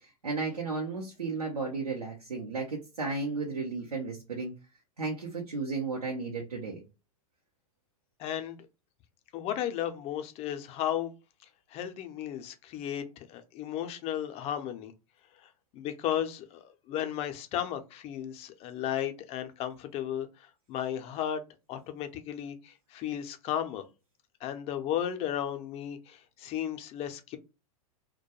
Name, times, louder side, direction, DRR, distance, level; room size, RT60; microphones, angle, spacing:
voice 1, 0.0-4.5 5.0-6.8, right 4 dB, 90° right, 0.7 m, -34 dB
voice 2, 8.2-8.6 9.3-11.1 11.7-14.9 15.4-21.4 21.7-23.8 24.4-27.4, left 10 dB, 35° left, 0.5 m, -34 dB
2.2 x 2.2 x 2.8 m
hypercardioid pair, 100°, 19 cm